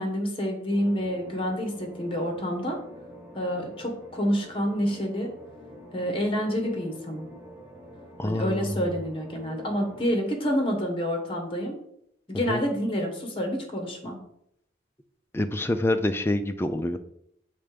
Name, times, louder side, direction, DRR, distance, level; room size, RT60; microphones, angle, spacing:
voice 1, 0.0-2.8 3.3-5.3 5.9-7.3 8.2-11.8 12.3-14.2, equal, 30° left, 3 dB, 1.3 m, -28 dB
sound 1, 0.7-10.1, equal, 10° right, 1.2 m, -46 dB
voice 2, 8.2-8.8 12.5-12.6 15.3-17.0, left 1 dB, 15° left, 8 dB, 0.4 m, -26 dB
6.8 x 3.3 x 5.1 m, 0.74 s
head